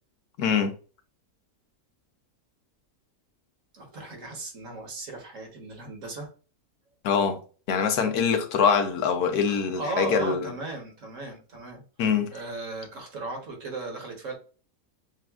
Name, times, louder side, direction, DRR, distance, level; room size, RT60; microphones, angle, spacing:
voice 1, 0.4-0.7 7.0-7.4 7.7-10.5 12.0-12.3, left 6 dB, 80° left, 1.3 m, -24 dB
voice 2, 3.7-6.3 9.5-11.8 12.3-14.3, right 3 dB, 55° right, 1.5 m, -36 dB
7.1 x 2.5 x 2.4 m
omnidirectional pair, 1.6 m